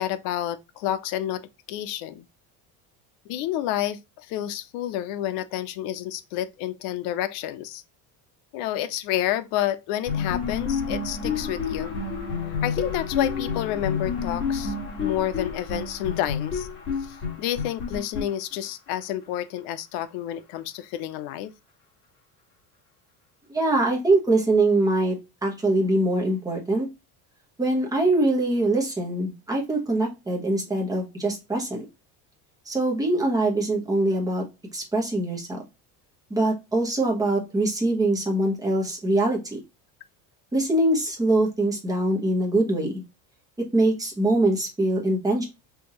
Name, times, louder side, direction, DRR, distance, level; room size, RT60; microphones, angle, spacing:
voice 1, 0.0-2.2 3.3-7.8 8.5-12.0 12.5-16.7 17.0-21.5, left 12 dB, 80° left, 0.6 m, -30 dB
sound 1, 10.0-18.9, left 5 dB, 30° left, 2.0 m, -29 dB
voice 2, 23.5-25.2 25.4-26.9 27.6-31.8 32.7-34.4 34.7-35.6 36.3-39.6 40.5-43.0 43.7-45.5, right 2 dB, 10° right, 1.0 m, -23 dB
5.7 x 2.6 x 2.9 m
cardioid pair, 170°, 38 cm